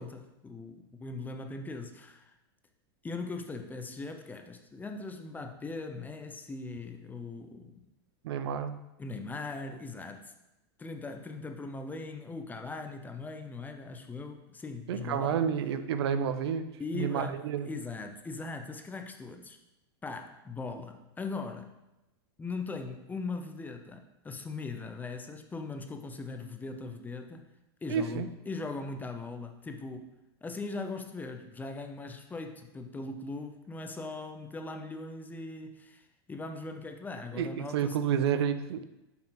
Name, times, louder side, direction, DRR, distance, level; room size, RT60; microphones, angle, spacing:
voice 1, 0.0-2.3 3.0-7.9 9.0-10.3 10.8-15.4 16.8-19.6 20.0-21.7 22.4-27.4 27.8-30.1 30.4-38.0, left 3 dB, 15° left, 6 dB, 0.7 m, -40 dB
voice 2, 8.2-8.8 14.9-17.7 27.9-28.3 37.3-38.9, right 8 dB, 75° right, 11 dB, 0.6 m, -30 dB
8.5 x 5.7 x 4.0 m, 0.95 s
hypercardioid pair, 125°, 14 cm